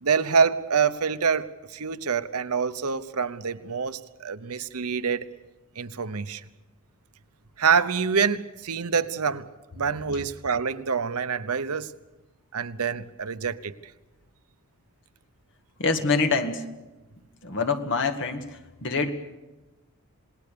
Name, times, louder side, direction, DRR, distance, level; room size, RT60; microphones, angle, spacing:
voice 1, 0.0-5.3 5.8-6.4 7.6-9.5 9.8-11.9 12.5-13.7, right 6 dB, 80° right, 0.9 m, -26 dB
voice 2, 15.8-16.6 17.4-19.1, left 4 dB, 55° left, 2.0 m, -25 dB
28.0 x 19.5 x 7.0 m
head